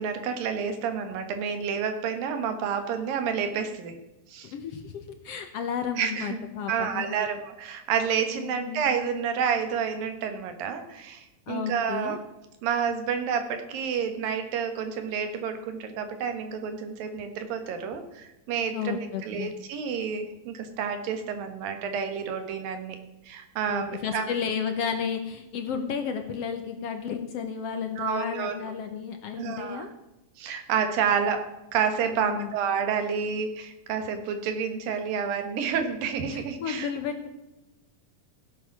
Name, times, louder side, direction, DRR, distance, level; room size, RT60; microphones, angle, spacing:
voice 1, 0.0-3.9 4.3-4.5 6.0-6.4 6.7-12.2 12.6-23.0 23.3-24.3 28.0-28.7 29.4-29.9 30.4-36.9, right 7 dB, 85° right, 7 dB, 3.2 m, -29 dB
voice 2, 4.5-4.9 5.2-7.3 8.3-8.8 11.5-12.2 18.7-19.5 23.7-29.9 32.1-32.5 35.6-35.7 36.3-37.3, left 7 dB, 65° left, 7 dB, 1.6 m, -32 dB
16.5 x 8.0 x 6.1 m, 0.98 s
omnidirectional pair, 3.9 m